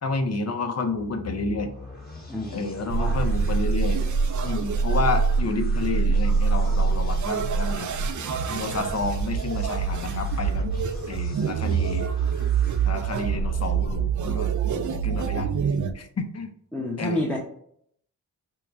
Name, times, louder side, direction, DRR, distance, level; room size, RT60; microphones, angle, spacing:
voice 1, 0.0-1.7 2.5-4.0 4.4-7.9 8.5-10.7 11.1-12.1 12.8-15.5 15.9-16.5 17.0-17.2, left 3 dB, 40° left, 7 dB, 0.7 m, -30 dB
sound 1, 0.8-14.6, left 3 dB, 20° left, 1.3 m, -42 dB
voice 2, 2.3-3.3 8.7-8.8 16.7-17.4, left 1 dB, 5° left, -3 dB, 0.8 m, -30 dB
sound 2, 2.9-15.9, right 5 dB, 50° right, 0.5 m, -25 dB
sound 3, 8.4-8.5 8.7-8.8 9.0-9.3 9.7-9.9 10.3-10.6 11.0-11.1 11.4-11.5 11.7-11.9 12.3-12.6 13.0-13.2, right 3 dB, 75° right, 0.9 m, -45 dB
4.6 x 2.2 x 2.5 m, 0.66 s
cardioid pair, 50°, 40 cm